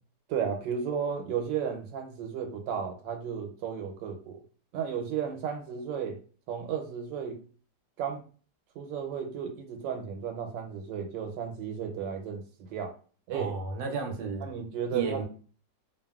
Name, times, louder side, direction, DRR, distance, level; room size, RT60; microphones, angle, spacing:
voice 1, 0.3-4.4 4.7-6.2 6.5-7.4 8.0-8.2 8.8-12.9 13.3-13.5 14.4-15.2, right 7 dB, 85° right, 4 dB, 1.3 m, -34 dB
voice 2, 13.3-14.5 14.9-15.2, right 4 dB, 65° right, 2 dB, 1.0 m, -33 dB
2.8 x 2.4 x 2.2 m, 0.40 s
omnidirectional pair, 1.9 m